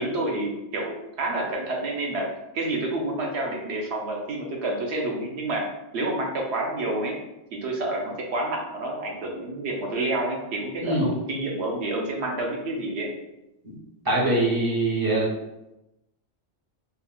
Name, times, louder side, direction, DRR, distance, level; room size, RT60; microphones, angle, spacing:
voice 1, 0.0-2.3 2.5-5.7 5.9-7.1 7.5-13.1, right 2 dB, 75° right, 0 dB, 0.9 m, -29 dB
voice 2, 14.0-15.3, right 2 dB, 30° right, -4 dB, 0.5 m, -23 dB
3.5 x 2.1 x 2.3 m, 0.93 s
omnidirectional pair, 1.2 m